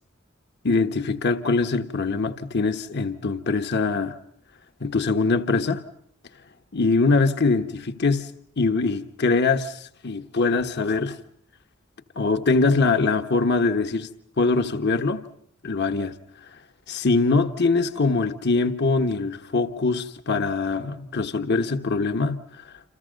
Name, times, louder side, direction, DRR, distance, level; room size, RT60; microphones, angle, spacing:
voice 1, 0.6-4.2 4.8-5.8 6.7-8.3 8.6-11.2 12.2-14.1 14.4-15.2 15.6-16.1 16.9-22.7, left 3 dB, 55° left, 1.3 m, -23 dB
29.0 x 28.0 x 5.3 m
head